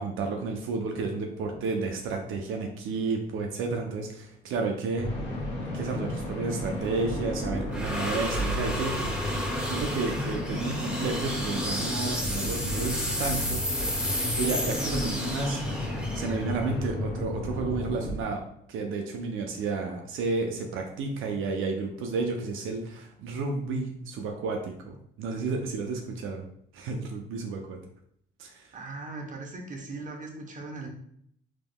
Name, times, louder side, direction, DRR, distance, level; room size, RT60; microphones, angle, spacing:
voice 1, 0.0-5.1 5.6-9.0 9.7-13.7 14.1-15.6 16.1-18.4 18.7-26.4 26.7-27.8 28.4-28.7, right 4 dB, 85° right, 2 dB, 0.5 m, -31 dB
sound 1, 5.0-18.2, left 1 dB, 60° left, 1.4 m, -33 dB
sound 2, 6.2-17.4, equal, 5° right, 1.1 m, -33 dB
voice 2, 28.7-30.9, right 3 dB, 40° right, 1 dB, 0.8 m, -39 dB
3.5 x 2.9 x 2.2 m, 0.69 s
cardioid pair, 90°, 20 cm